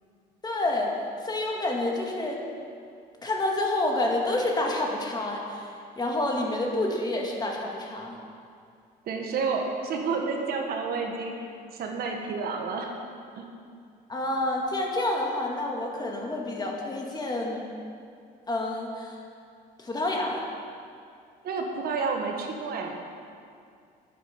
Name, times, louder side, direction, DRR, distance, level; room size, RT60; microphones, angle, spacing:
voice 1, 0.4-0.9 1.2-2.4 3.2-5.7 6.0-8.2 14.1-17.7 18.5-19.2 19.8-20.4, left 2 dB, 25° left, 0 dB, 1.9 m, -28 dB
voice 2, 9.0-12.9 13.4-13.5 21.4-23.0, right 4 dB, 65° right, 2 dB, 1.6 m, -30 dB
9.7 x 8.7 x 7.0 m, 2.4 s
cardioid pair, 110°, 17 cm